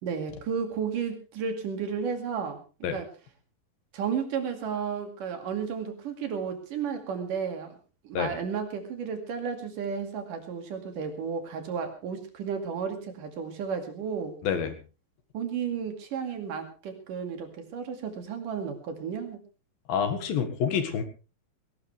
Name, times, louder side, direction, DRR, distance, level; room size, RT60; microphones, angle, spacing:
voice 1, 0.0-3.1 3.9-7.8 8.0-14.3 15.3-19.4, right 6 dB, 70° right, 6 dB, 3.8 m, -33 dB
voice 2, 14.4-14.8 19.9-21.0, left 7 dB, 85° left, 7 dB, 3.6 m, -27 dB
19.0 x 18.0 x 3.4 m, 0.33 s
omnidirectional pair, 4.0 m